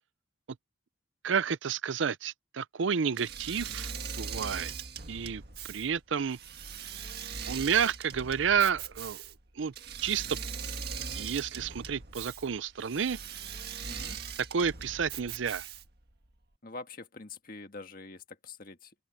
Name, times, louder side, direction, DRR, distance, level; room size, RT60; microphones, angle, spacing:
voice 1, 1.2-4.7 5.1-5.4 5.7-6.4 7.5-9.2 9.6-9.7 10.0-10.4 11.1-13.2 14.5-15.7, right 7 dB, 70° right, 0.5 m, -30 dB
Engine / Mechanisms, 3.1-16.0, right 6 dB, 50° right, 1.7 m, -40 dB
voice 2, 13.9-14.2 16.6-18.9, left 3 dB, 45° left, 1.6 m, -45 dB
open air
head